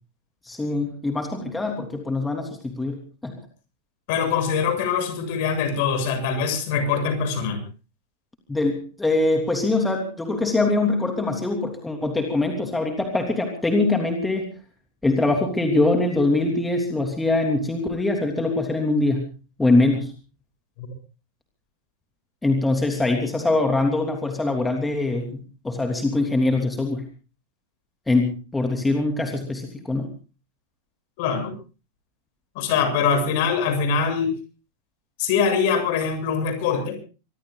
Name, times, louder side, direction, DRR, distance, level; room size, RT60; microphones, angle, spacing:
voice 1, 0.5-3.4 8.5-14.5 15.0-19.3 19.6-20.1 22.4-27.0 28.1-30.1, left 2 dB, 10° left, 3 dB, 3.2 m, -23 dB
voice 2, 4.1-7.6 20.8-20.9 31.2-31.5 32.6-34.3 35.2-37.0, left 6 dB, 50° left, 8 dB, 7.2 m, -23 dB
25.5 x 23.0 x 2.4 m, 0.35 s
figure-of-eight pair, 90°, 0 cm